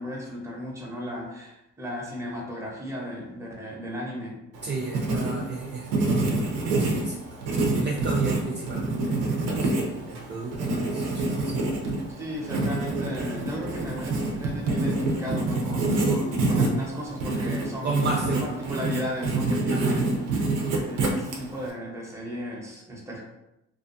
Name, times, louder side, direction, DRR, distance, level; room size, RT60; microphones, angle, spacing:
voice 1, 0.0-4.4 12.2-23.2, equal, 10° right, -3 dB, 0.9 m, -35 dB
Writing, 4.5-21.7, right 2 dB, 85° right, 0.6 m, -27 dB
voice 2, 4.6-7.2 7.8-11.6 17.8-18.5 19.7-20.0, right 3 dB, 35° right, -2 dB, 0.4 m, -33 dB
2.6 x 2.3 x 2.6 m, 0.90 s
cardioid pair, 90°, 30 cm